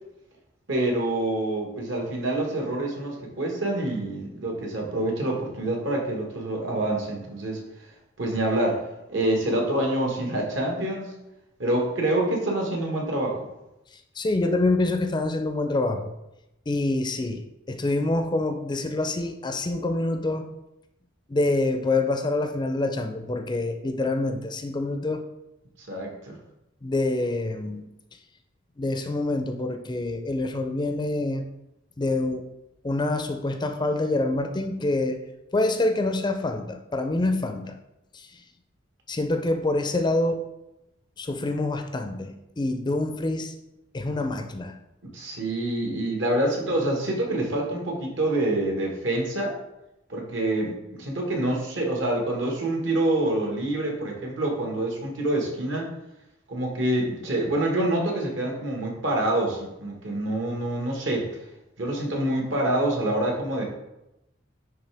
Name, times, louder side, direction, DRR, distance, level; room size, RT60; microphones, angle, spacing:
voice 1, 0.7-7.6 8.2-11.2 11.6-13.4 25.8-26.3 45.0-49.6 50.1-55.9 56.5-61.3 61.8-63.6, right 1 dB, 70° right, 0 dB, 1.5 m, -26 dB
voice 2, 14.2-16.1 16.7-20.5 21.3-25.2 26.8-27.8 28.8-31.4 32.0-32.5 32.8-35.2 35.5-37.8 38.1-38.3 39.1-40.4 41.2-43.5 43.9-44.7, left 2 dB, 25° left, 6 dB, 0.4 m, -26 dB
9.6 x 3.3 x 3.4 m, 0.92 s
head